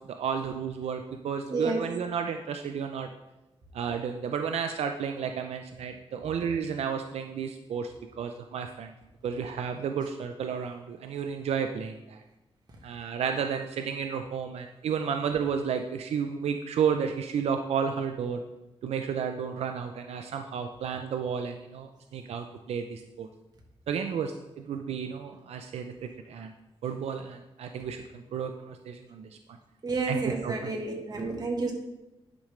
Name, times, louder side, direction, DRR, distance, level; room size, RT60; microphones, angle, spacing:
voice 1, 0.1-3.1 3.7-8.9 9.2-12.2 12.8-18.4 18.8-23.3 23.9-26.5 26.8-29.6 30.1-30.5, right 7 dB, 85° right, 6 dB, 0.5 m, -32 dB
voice 2, 1.5-1.8 29.8-31.7, right 3 dB, 40° right, 1 dB, 1.4 m, -30 dB
10.5 x 5.1 x 3.2 m, 0.97 s
wide cardioid pair, 130°, 10 cm